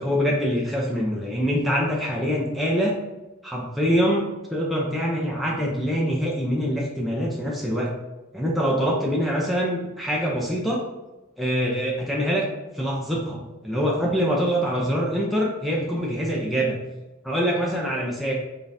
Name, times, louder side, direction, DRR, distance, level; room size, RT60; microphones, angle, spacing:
voice 1, 0.0-3.0 3.4-7.9 8.3-10.8 11.4-12.5 12.7-16.8 17.2-18.3, equal, ahead, -4 dB, 0.6 m, -24 dB
5.1 x 3.7 x 2.7 m, 1.0 s
head